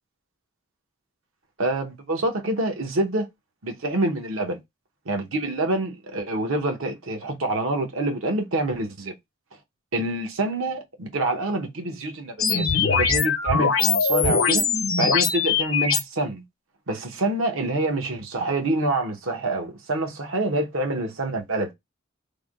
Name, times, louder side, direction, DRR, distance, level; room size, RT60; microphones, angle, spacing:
voice 1, 1.6-3.3 3.6-4.6 5.1-9.1 9.9-14.7 15.0-16.4 16.9-21.7, right 2 dB, 75° right, 1.0 m, -26 dB
sound 1, 12.4-16.0, left 5 dB, 85° left, 0.8 m, -21 dB
3.4 x 2.2 x 3.5 m
head